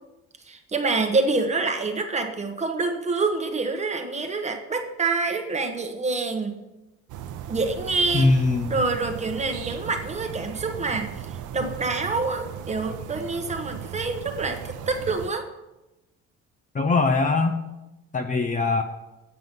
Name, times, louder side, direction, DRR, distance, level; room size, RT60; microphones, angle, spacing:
voice 1, 0.5-6.6 7.5-8.3 8.7-11.1 11.5-15.5, right 3 dB, 20° right, 5 dB, 1.0 m, -26 dB
sound 1, 7.1-15.3, right 9 dB, 80° right, 0.7 m, -37 dB
voice 2, 8.1-8.8 16.7-17.6 18.1-18.8, left 3 dB, 25° left, 5 dB, 0.6 m, -21 dB
7.9 x 7.6 x 5.3 m, 0.99 s
cardioid pair, 140°, 30 cm